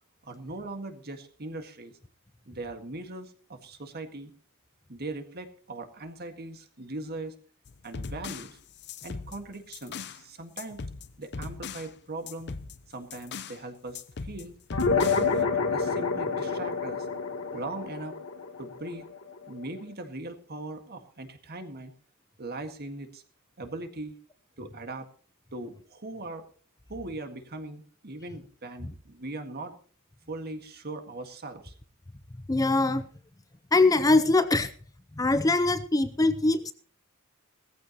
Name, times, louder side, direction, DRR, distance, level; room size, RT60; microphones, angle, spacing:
voice 1, 0.2-2.0 2.5-4.3 4.9-7.4 7.8-8.6 9.0-10.8 11.2-12.5 12.9-14.5 15.0-17.1 17.5-18.2 18.6-19.1 19.5-21.9 22.4-23.2 23.6-24.2 24.6-25.1 25.5-26.4 26.9-29.8 30.3-31.7, right 2 dB, 50° right, 7 dB, 1.8 m, -40 dB
sound 1, 7.7-10.2 10.6-11.9 12.3-13.6 13.9-15.4, left 4 dB, 50° left, 0.7 m, -39 dB
sound 2, 14.7-19.5, left 4 dB, 80° left, 1.9 m, -28 dB
voice 2, 32.5-33.1 33.7-34.7 35.1-36.7, left 2 dB, 15° left, 12 dB, 0.6 m, -22 dB
17.5 x 14.5 x 3.0 m, 0.43 s
head